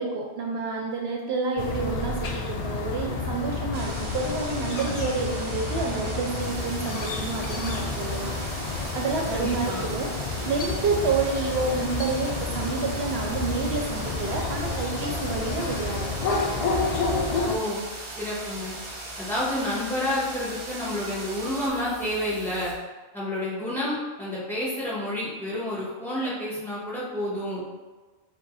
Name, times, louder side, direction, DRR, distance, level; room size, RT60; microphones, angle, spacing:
voice 1, 0.0-8.3 8.9-10.1 10.4-16.4, right 4 dB, 70° right, 1 dB, 0.8 m, -29 dB
sound 1, 1.6-17.6, left 3 dB, 60° left, 0.4 m, -30 dB
sound 2, 3.7-21.7, right 2 dB, 35° right, 0.5 m, -39 dB
sound 3, 6.4-22.7, right 1 dB, 20° left, 1.0 m, -44 dB
voice 2, 9.3-9.8 17.4-17.8 18.2-18.7 19.2-22.7 23.1-27.6, left 1 dB, ahead, -8 dB, 1.4 m, -29 dB
5.1 x 2.2 x 4.0 m, 1.3 s
omnidirectional pair, 1.1 m